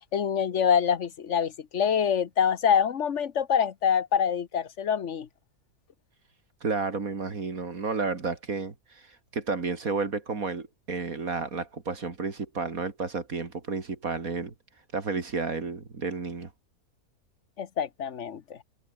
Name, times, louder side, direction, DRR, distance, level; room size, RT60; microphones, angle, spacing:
voice 1, 0.1-5.3 17.6-18.6, left 8 dB, 55° left, 1.4 m, -25 dB
voice 2, 6.6-14.5 14.9-16.5, right 4 dB, 70° right, 3.1 m, -31 dB
omnidirectional pair, 1.5 m